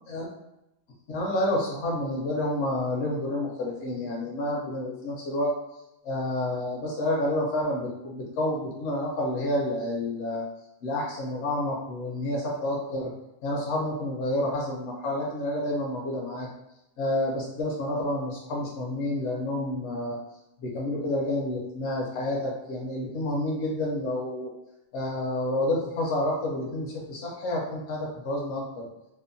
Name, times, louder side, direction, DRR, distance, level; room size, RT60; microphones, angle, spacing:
voice 1, 1.1-5.5 6.0-10.4 10.8-13.1 13.4-16.5 17.0-20.2 20.6-24.5 24.9-28.6, left 1 dB, 70° left, -3 dB, 0.8 m, -29 dB
2.7 x 2.0 x 2.5 m, 0.89 s
omnidirectional pair, 1.3 m